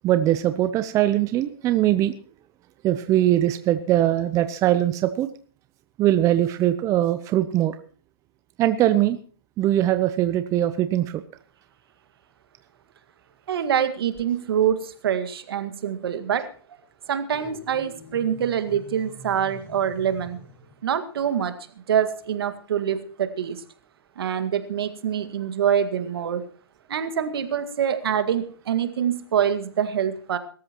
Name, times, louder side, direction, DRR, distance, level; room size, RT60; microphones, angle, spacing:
voice 1, 0.0-2.1 2.8-5.3 6.0-7.8 8.6-9.2 9.6-11.2, right 13 dB, 25° right, 11 dB, 0.7 m, -21 dB
voice 2, 13.5-16.5 17.1-20.4 20.8-21.5 21.9-23.6 24.2-26.4 26.9-30.4, right 9 dB, 70° right, 8 dB, 2.0 m, -25 dB
sound 1, 17.3-20.8, left 1 dB, 15° left, 6.0 m, -45 dB
22.5 x 13.5 x 3.0 m, 0.41 s
hypercardioid pair, 135°, 13 cm